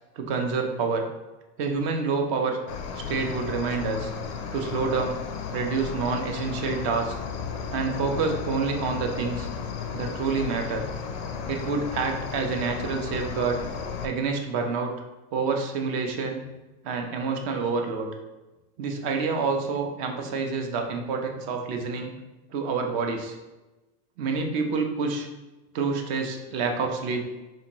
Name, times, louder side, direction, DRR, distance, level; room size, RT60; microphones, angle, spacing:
voice 1, 0.2-1.0 1.6-2.6 2.9-4.1 4.5-5.2 5.5-7.1 7.7-9.5 9.9-10.8 11.5-13.6 14.0-14.9 15.3-16.4 16.8-18.1 18.8-22.1 22.5-23.4 24.2-25.3 25.7-27.2, right 4 dB, 50° right, 3 dB, 0.6 m, -27 dB
Cricket, 2.7-14.1, left 6 dB, 40° left, 0.4 m, -34 dB
4.2 x 2.6 x 2.9 m, 1.1 s
supercardioid pair, 155°, 36 cm